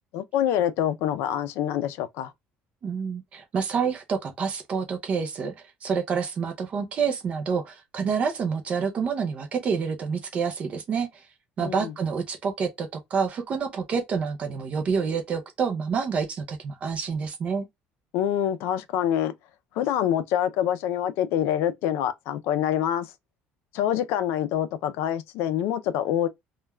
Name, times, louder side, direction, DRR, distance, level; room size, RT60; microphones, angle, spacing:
voice 1, 0.1-2.3 11.6-11.9 18.1-19.3 19.8-23.1 23.7-26.3, left 10 dB, 75° left, 0.4 m, -26 dB
voice 2, 2.8-5.5 5.8-11.2 11.6-17.7, right 6 dB, 30° right, 0.5 m, -28 dB
3.2 x 2.2 x 2.2 m
cardioid pair, 175°, 4 cm